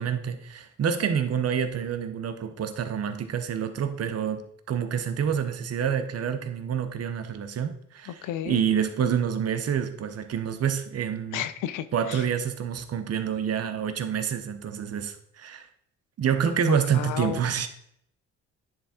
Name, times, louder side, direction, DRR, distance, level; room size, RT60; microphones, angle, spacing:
voice 1, 0.0-4.4 4.7-11.5 11.9-15.7 16.2-17.7, right 8 dB, 55° right, 0.9 m, -27 dB
voice 2, 8.1-8.6 11.3-12.2 16.7-17.5, left 11 dB, 90° left, 0.6 m, -33 dB
10.0 x 3.5 x 4.3 m
cardioid pair, 90°, 30 cm